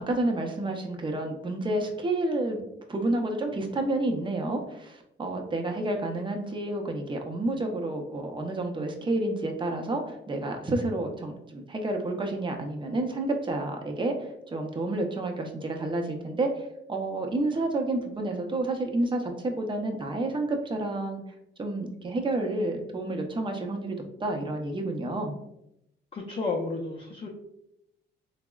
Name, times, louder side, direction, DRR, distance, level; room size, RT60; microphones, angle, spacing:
voice 1, 0.0-2.6 2.9-21.2 21.6-25.4, right 2 dB, 25° right, 3 dB, 0.5 m, -30 dB
voice 2, 26.1-27.3, left 3 dB, 30° left, -3 dB, 0.4 m, -32 dB
3.5 x 2.0 x 2.3 m, 0.82 s
cardioid pair, 90°, 20 cm